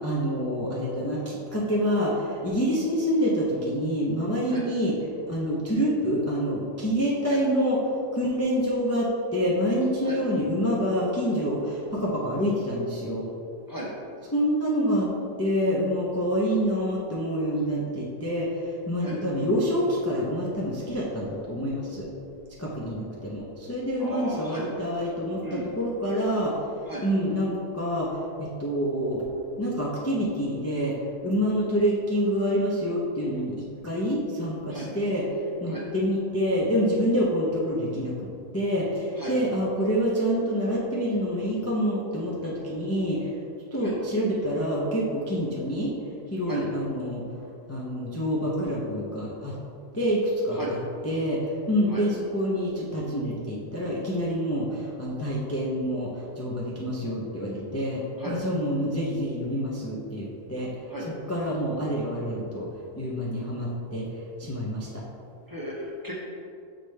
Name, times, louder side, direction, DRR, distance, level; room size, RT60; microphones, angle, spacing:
voice 1, 0.0-4.9 5.2-7.8 8.1-13.2 14.3-15.1 15.4-22.1 22.6-26.5 27.0-29.2 29.6-30.9 31.2-33.6 33.8-35.2 35.6-38.3 38.5-43.3 43.7-45.9 46.3-47.2 47.7-49.5 49.9-50.2 50.4-50.6 51.0-60.7 61.3-62.7 63.0-64.1 64.4-64.9, equal, 20° left, -5 dB, 0.4 m, -27 dB
voice 2, 24.0-24.7 25.4-25.7 26.9-27.1 34.7-34.9 35.7-35.8 39.2-39.4 43.8-43.9 46.5-46.6 50.5-50.7 51.9-52.0 58.2-58.4 60.9-61.1 65.5-66.1, right 1 dB, 20° right, -5 dB, 0.7 m, -35 dB
5.8 x 5.0 x 3.3 m, 2.5 s
omnidirectional pair, 1.4 m